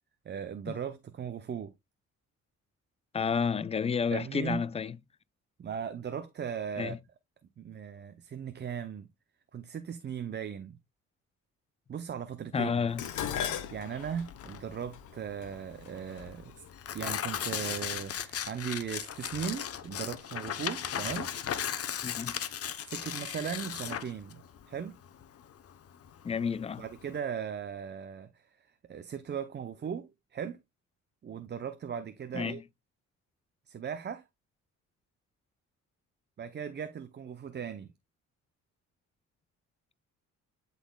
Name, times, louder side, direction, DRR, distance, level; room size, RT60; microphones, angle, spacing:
voice 1, 0.3-1.7 4.1-4.6 5.6-7.0 7.6-9.1 9.5-10.8 11.9-12.7 13.7-16.5 16.9-21.3 22.9-24.4 24.7-25.0 26.8-30.6 31.2-32.6 33.7-34.2 36.4-37.9, right 7 dB, 35° right, 0.6 m, -38 dB
voice 2, 3.1-5.0 6.8-7.0 12.5-13.0 22.0-22.4 26.2-26.8 32.3-32.6, left 6 dB, 20° left, 0.4 m, -30 dB
Tearing, 12.9-27.2, left 9 dB, 50° left, 0.8 m, -37 dB
Dishes pots and pans, 13.0-17.3 18.2-18.6 19.0-19.9 20.1-20.2, left 9 dB, 80° left, 1.1 m, -39 dB
11.5 x 4.1 x 2.2 m
cardioid pair, 90°, 30 cm